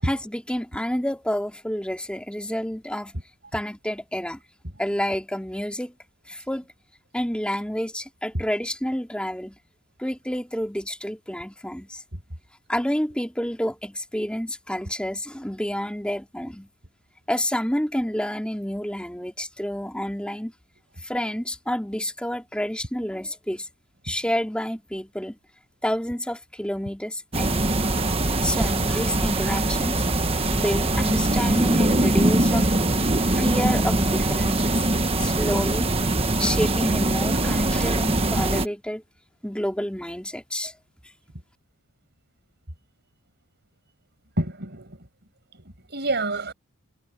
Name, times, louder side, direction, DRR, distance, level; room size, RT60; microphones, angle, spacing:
voice 1, 0.0-3.1 3.5-4.4 4.8-5.9 6.3-6.7 7.1-9.6 10.0-12.0 12.7-16.7 17.3-20.5 21.0-23.7 24.0-25.4 25.8-27.7 28.4-30.1 30.5-32.7 33.2-34.9 35.2-35.9 36.4-39.0 39.4-40.7, equal, 5° left, 2.7 m, -29 dB
sound 1, 27.3-38.7, right 2 dB, 25° right, 1.4 m, -22 dB
voice 2, 44.4-45.1 45.5-46.5, right 2 dB, 50° right, 6.7 m, -28 dB
head